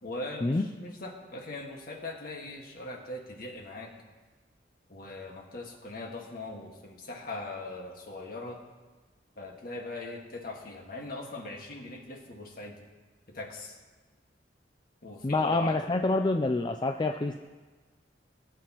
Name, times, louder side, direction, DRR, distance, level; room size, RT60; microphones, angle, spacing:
voice 1, 0.0-3.9 4.9-8.6 9.4-12.8 13.3-13.7 15.0-16.0, left 2 dB, 50° left, 1 dB, 1.6 m, -40 dB
voice 2, 15.2-17.3, left 2 dB, 25° left, 5 dB, 0.4 m, -27 dB
20.0 x 9.4 x 3.0 m, 1.3 s
head